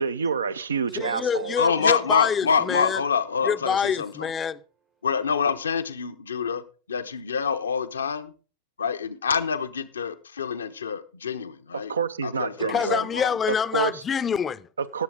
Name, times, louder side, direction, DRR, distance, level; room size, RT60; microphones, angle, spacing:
voice 1, 0.0-1.6 11.7-13.1 13.7-14.0 14.8-15.0, right 6 dB, 70° right, 0.6 m, -28 dB
voice 2, 1.0-3.0 3.4-4.6 12.7-14.7, left 7 dB, 20° left, 0.6 m, -26 dB
sound 1, 1.0-3.5 5.8-5.9, right 8 dB, 35° right, 0.9 m, -46 dB
voice 3, 1.6-4.3 5.0-8.3 8.8-11.9 12.2-13.3, left 6 dB, 70° left, 0.9 m, -26 dB
20.0 x 7.6 x 3.6 m
figure-of-eight pair, 90°, 0 cm